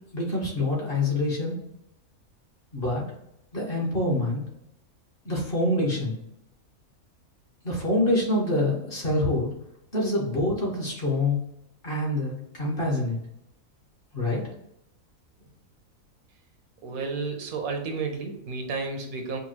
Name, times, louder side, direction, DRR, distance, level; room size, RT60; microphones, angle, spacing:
voice 1, 0.1-1.6 2.7-3.0 3.5-4.4 5.2-6.1 7.6-9.5 9.9-11.4 11.8-13.2 14.1-14.5, left 1 dB, 45° left, -3 dB, 1.5 m, -26 dB
voice 2, 16.8-19.4, right 4 dB, 80° right, 4 dB, 1.2 m, -31 dB
5.4 x 2.3 x 2.9 m, 0.77 s
omnidirectional pair, 1.5 m